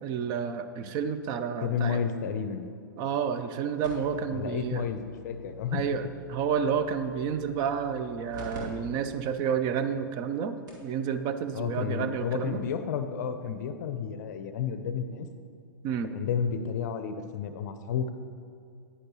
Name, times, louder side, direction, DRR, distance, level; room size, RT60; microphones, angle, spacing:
voice 1, 0.0-2.0 3.0-4.8 5.7-12.6 15.8-16.2, right 7 dB, 35° right, 10 dB, 0.6 m, -30 dB
voice 2, 1.6-2.7 4.3-5.8 11.5-15.3 16.1-18.1, left 7 dB, 55° left, 9 dB, 0.5 m, -31 dB
sound 1, 3.8-8.6 9.0-9.1 9.7-9.8 10.4-10.5 10.7-10.9 12.2-12.3, left 2 dB, 60° right, 2.2 m, -46 dB
10.0 x 9.7 x 3.1 m, 2.4 s
figure-of-eight pair, 105°, 11 cm